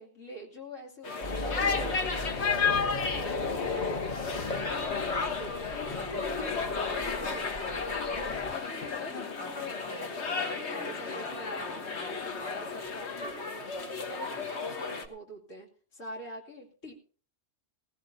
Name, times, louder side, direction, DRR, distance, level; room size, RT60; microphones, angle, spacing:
voice 1, 0.0-7.8 8.1-16.9, left 1 dB, 80° left, 0 dB, 3.1 m, -45 dB
sound 1, 1.0-15.1, left 5 dB, 60° left, 1.5 m, -33 dB
sound 2, 1.2-8.6, left 3 dB, 35° left, 0.9 m, -36 dB
sound 3, 5.9-13.5, left 1 dB, 5° left, 1.7 m, -48 dB
18.5 x 16.0 x 2.7 m, 0.43 s
omnidirectional pair, 1.3 m